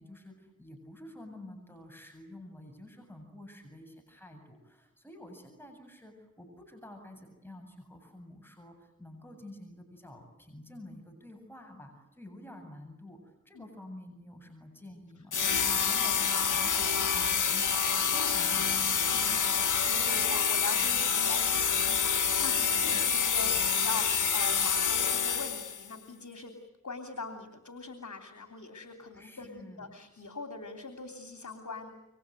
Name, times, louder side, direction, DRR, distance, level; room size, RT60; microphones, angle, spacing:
voice 1, 0.0-19.6 22.8-23.0 29.1-29.9, left 1 dB, 5° left, 4 dB, 8.0 m, -49 dB
sound 1, 15.3-25.9, left 6 dB, 90° left, 1.3 m, -27 dB
voice 2, 19.1-26.5 26.8-31.9, left 3 dB, 70° left, 6 dB, 3.1 m, -42 dB
28.5 x 24.5 x 8.0 m, 0.98 s
cardioid pair, 40°, 30 cm